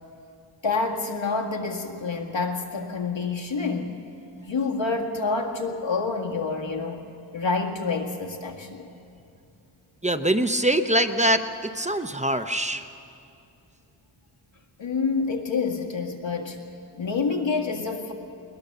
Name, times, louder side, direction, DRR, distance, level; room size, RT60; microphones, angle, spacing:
voice 1, 0.6-4.0 4.5-7.0 7.3-8.9 14.8-16.6 17.0-18.1, left 4 dB, 65° left, 1 dB, 2.1 m, -27 dB
voice 2, 10.0-12.9, right 1 dB, 15° right, 8 dB, 0.7 m, -23 dB
21.0 x 20.0 x 6.8 m, 2.5 s
wide cardioid pair, 95°, 48 cm